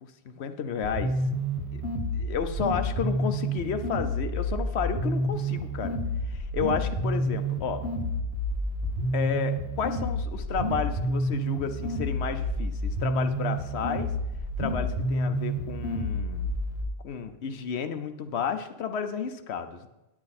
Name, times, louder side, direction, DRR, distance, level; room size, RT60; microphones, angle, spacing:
voice 1, 0.2-1.2 1.7-1.8 2.1-6.0 6.3-7.8 9.1-14.1 14.6-16.6 17.0-19.9, left 6 dB, 80° left, 9 dB, 1.0 m, -32 dB
sound 1, 0.8-16.8, equal, 75° right, 2.2 m, -29 dB
9.7 x 8.8 x 4.2 m, 0.97 s
omnidirectional pair, 1.1 m